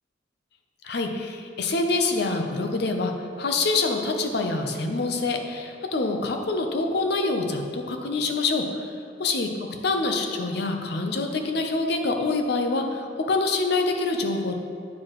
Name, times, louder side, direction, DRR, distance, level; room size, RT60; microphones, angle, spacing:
voice 1, 0.8-3.1 3.4-8.8 9.2-9.5 9.8-14.6, left 3 dB, 60° left, 4 dB, 0.6 m, -26 dB
9.4 x 4.7 x 3.0 m, 2.5 s
head